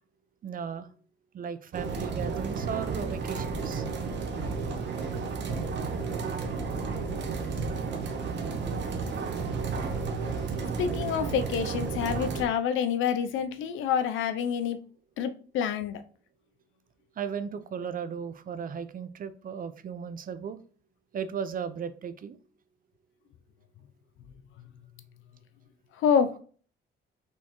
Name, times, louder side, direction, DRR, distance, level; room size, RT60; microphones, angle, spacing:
voice 1, 0.4-0.9 1.3-3.8 17.2-20.6 21.1-22.4, right 7 dB, 45° right, 12 dB, 0.5 m, -36 dB
sound 1, 1.7-12.5, right 4 dB, 60° right, 0.9 m, -32 dB
voice 2, 10.8-14.8 15.2-16.0 26.0-26.4, left 7 dB, 85° left, 9 dB, 0.6 m, -27 dB
4.3 x 3.5 x 3.0 m, 0.42 s
cardioid pair, 90°, 20 cm